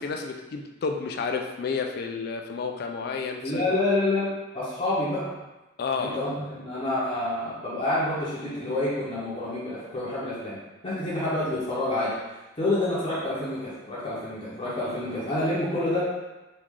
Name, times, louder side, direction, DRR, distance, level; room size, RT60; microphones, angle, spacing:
voice 1, 0.0-3.8 5.8-6.2, left 5 dB, 50° left, 3 dB, 0.3 m, -31 dB
voice 2, 3.4-4.3 4.5-5.3 6.0-10.6 10.8-16.0, left 2 dB, 25° left, -10 dB, 0.7 m, -28 dB
3.1 x 2.4 x 3.5 m, 1.1 s
head